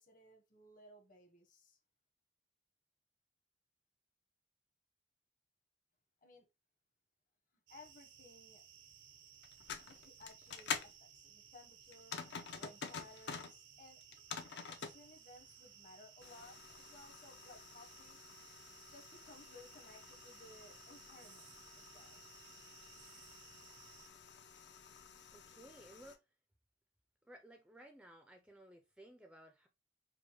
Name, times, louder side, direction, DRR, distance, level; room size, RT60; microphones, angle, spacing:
voice 1, 0.0-1.8 6.2-6.5 7.7-8.6 9.9-10.7 11.0-12.1 12.5-14.0 14.7-18.2 18.9-22.2, left 2 dB, 45° left, 1.0 m, -59 dB
sound 1, 7.7-24.1, right 8 dB, 85° right, 0.6 m, -60 dB
sound 2, 9.4-10.9 11.9-13.5 14.0-15.0 16.2-26.2, left 6 dB, 65° left, 0.6 m, -49 dB
voice 2, 25.3-26.2 27.2-29.7, right 1 dB, 5° right, 0.4 m, -58 dB
5.1 x 2.1 x 2.9 m
head